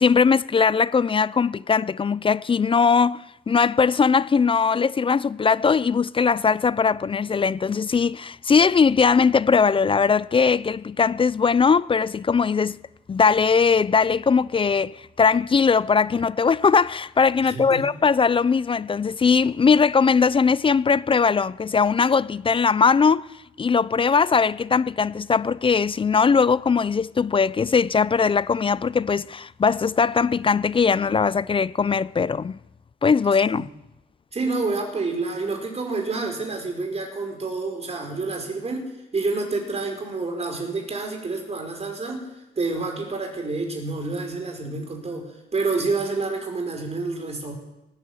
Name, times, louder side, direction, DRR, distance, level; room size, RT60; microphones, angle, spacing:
voice 1, 0.0-12.8 13.1-23.3 23.6-32.6 33.0-33.7, left 5 dB, 25° left, 0.4 m, -20 dB
voice 2, 17.4-17.9 33.5-33.6 34.3-42.3 42.6-47.5, right 3 dB, 30° right, 4.5 m, -28 dB
18.5 x 9.8 x 7.2 m
cardioid pair, 90°, 20 cm